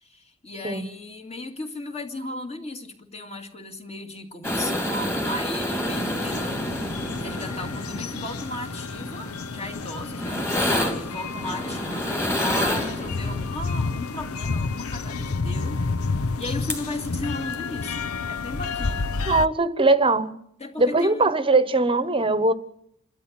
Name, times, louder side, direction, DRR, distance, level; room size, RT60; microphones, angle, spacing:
voice 1, 0.0-15.8 16.1-19.1 20.6-21.3, left 1 dB, 30° left, 2.6 m, -36 dB
sound 1, 4.4-13.5 16.4-16.5 16.7-17.1 17.5-17.6, left 1 dB, 10° left, 2.8 m, -29 dB
sound 2, 5.9-19.5, left 4 dB, 80° left, 0.8 m, -30 dB
voice 2, 19.3-20.4 20.8-22.5, right 3 dB, 25° right, 1.2 m, -20 dB
28.5 x 13.0 x 9.1 m
head